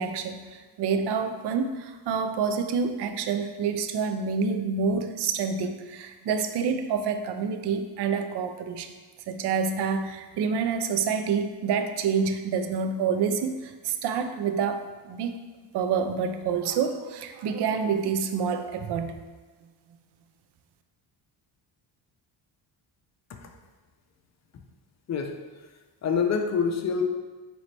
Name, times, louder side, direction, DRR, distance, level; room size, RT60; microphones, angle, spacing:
voice 1, 0.0-8.9 9.3-15.4 15.7-19.2, right 6 dB, 55° right, 8 dB, 0.5 m, -28 dB
voice 2, 25.1-25.7 26.0-27.0, left 6 dB, 35° left, 4 dB, 0.5 m, -27 dB
3.9 x 3.1 x 3.2 m, 1.3 s
cardioid pair, 90°, 49 cm